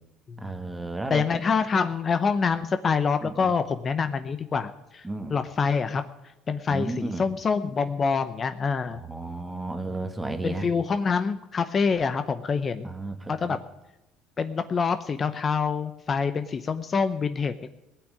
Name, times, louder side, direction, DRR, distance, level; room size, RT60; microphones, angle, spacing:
voice 1, 0.4-1.2 3.2-3.5 5.0-5.3 6.7-7.3 8.9-10.7 12.8-13.6, right 2 dB, 10° right, 8 dB, 1.6 m, -33 dB
voice 2, 1.1-5.0 5.3-6.1 6.5-9.0 10.4-12.9 13.3-13.6 14.4-17.7, left 5 dB, 30° left, 10 dB, 0.7 m, -26 dB
18.0 x 6.2 x 9.6 m, 0.99 s
supercardioid pair, 105°, 0 cm